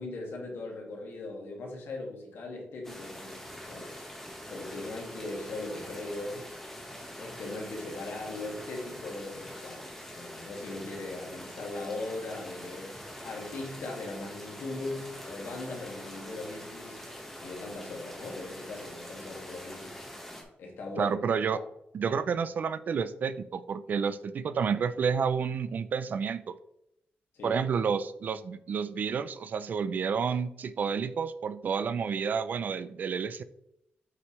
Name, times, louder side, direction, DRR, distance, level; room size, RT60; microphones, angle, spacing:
voice 1, 0.0-3.9 4.5-6.5 7.2-20.0 20.6-21.2 21.5-21.7 22.1-22.2 27.3-27.6, left 2 dB, 85° left, 2.1 m, -39 dB
sound 1, 2.8-20.4, equal, 10° left, 1.4 m, -44 dB
voice 2, 21.0-21.6 21.9-26.5 27.4-33.4, right 6 dB, 50° right, 0.4 m, -30 dB
7.7 x 5.9 x 3.2 m
wide cardioid pair, 175°, 4 cm